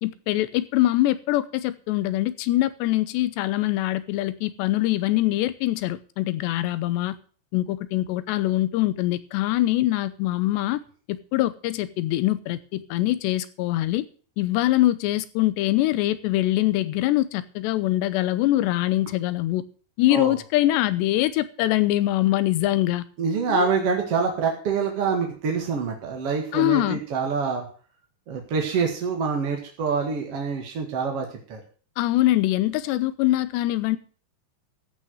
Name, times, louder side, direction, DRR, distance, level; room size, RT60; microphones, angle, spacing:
voice 1, 0.0-7.2 7.5-10.8 11.1-14.1 14.4-19.6 20.0-23.0 23.5-23.7 26.5-27.0 32.0-34.0, left 15 dB, 85° left, 14 dB, 3.0 m, -23 dB
voice 2, 23.2-27.7 28.3-31.6, right 5 dB, 50° right, 2 dB, 2.1 m, -26 dB
14.5 x 6.0 x 7.7 m, 0.40 s
omnidirectional pair, 4.9 m